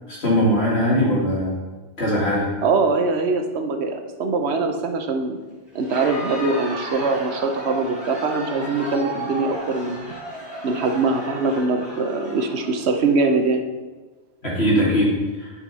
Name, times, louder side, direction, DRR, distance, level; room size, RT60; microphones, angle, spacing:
voice 1, 0.1-1.6 2.0-2.5 14.4-15.5, equal, 75° left, -5 dB, 2.7 m, -20 dB
voice 2, 2.6-5.4 5.7-10.1 10.6-13.6, right 3 dB, 75° right, 5 dB, 1.1 m, -22 dB
Crowd, 5.7-13.2, right 1 dB, 60° right, 2.8 m, -34 dB
9.8 x 5.6 x 4.1 m, 1.3 s
omnidirectional pair, 1.1 m